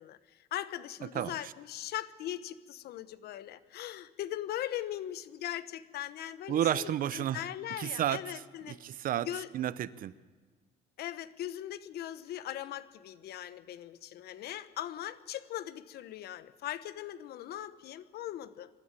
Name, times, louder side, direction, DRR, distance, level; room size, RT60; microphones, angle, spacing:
voice 1, 0.0-8.8 9.2-9.5 11.0-18.7, left 12 dB, 70° left, 14 dB, 1.1 m, -40 dB
voice 2, 1.1-1.5 6.5-7.4 7.8-8.2 8.7-9.3 9.5-10.1, right 11 dB, 55° right, 17 dB, 0.7 m, -31 dB
23.5 x 12.5 x 9.0 m, 1.4 s
cardioid pair, 110°, 17 cm